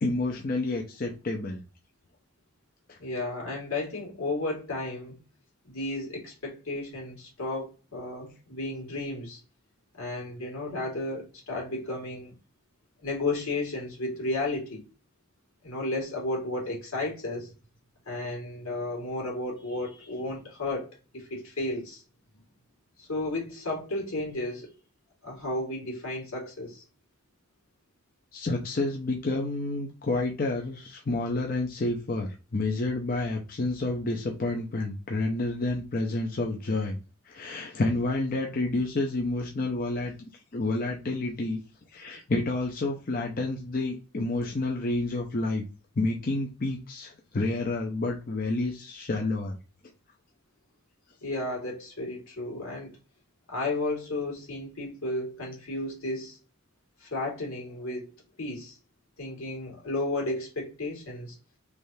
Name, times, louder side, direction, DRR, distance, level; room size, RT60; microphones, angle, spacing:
voice 1, 0.0-1.6 2.9-3.0 28.3-37.0 37.3-40.1 40.5-41.6 41.9-45.6 46.0-49.6, left 2 dB, 40° left, 0.5 m, -29 dB
voice 2, 3.0-5.2 5.6-9.4 9.9-12.3 13.0-14.8 15.6-17.5 18.1-22.0 23.0-24.7 25.2-26.8 51.2-53.0 53.5-56.4 57.0-58.1 58.4-58.8 59.2-61.4, left 2 dB, 90° left, 2.0 m, -33 dB
3.5 x 3.1 x 2.7 m
head